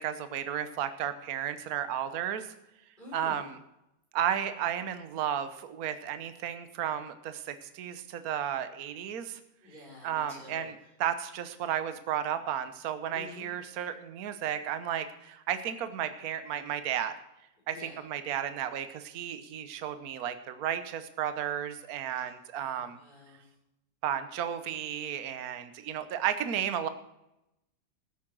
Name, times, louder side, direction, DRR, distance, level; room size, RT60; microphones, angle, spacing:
voice 1, 0.0-2.5 3.1-3.6 4.1-9.4 10.0-10.7 11.0-17.1 17.7-23.0 24.0-26.9, right 9 dB, 55° right, 10 dB, 1.3 m, -33 dB
voice 2, 3.0-3.5 9.6-10.9 13.1-13.8 17.7-18.0 22.1-22.3 22.5-23.5, left 2 dB, 20° left, -5 dB, 6.5 m, -49 dB
14.5 x 8.8 x 6.2 m, 0.88 s
omnidirectional pair, 2.2 m